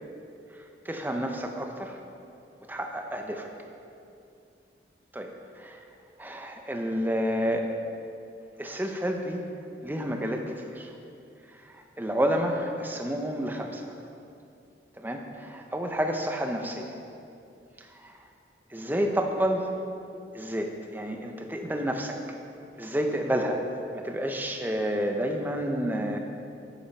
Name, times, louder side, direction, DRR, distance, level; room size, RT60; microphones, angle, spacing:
voice 1, 0.8-2.0 2.7-3.5 5.1-5.3 5.6-5.8 6.2-7.7 8.6-9.4 9.8-10.9 11.7-13.9 15.0-16.9 17.8-18.1 18.7-19.7 20.3-22.2 22.8-23.6 23.9-26.2, equal, 10° right, 3 dB, 0.7 m, -30 dB
9.2 x 8.4 x 5.4 m, 2.6 s
head